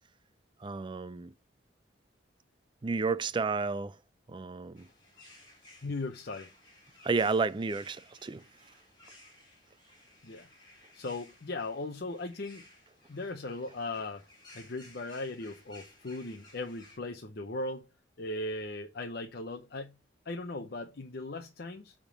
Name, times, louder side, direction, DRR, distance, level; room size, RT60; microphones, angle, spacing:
voice 1, 0.6-1.3 2.8-4.0 4.3-4.9 7.0-8.4, right 4 dB, 25° right, 0.3 m, -31 dB
sound 1, 4.7-17.0, left 2 dB, 25° left, 3.7 m, -57 dB
voice 2, 5.8-6.5 10.2-10.5 10.9-12.6 13.1-14.2 14.5-17.8 18.2-19.9 20.3-21.9, left 2 dB, 55° left, 0.7 m, -38 dB
8.7 x 3.7 x 6.0 m
head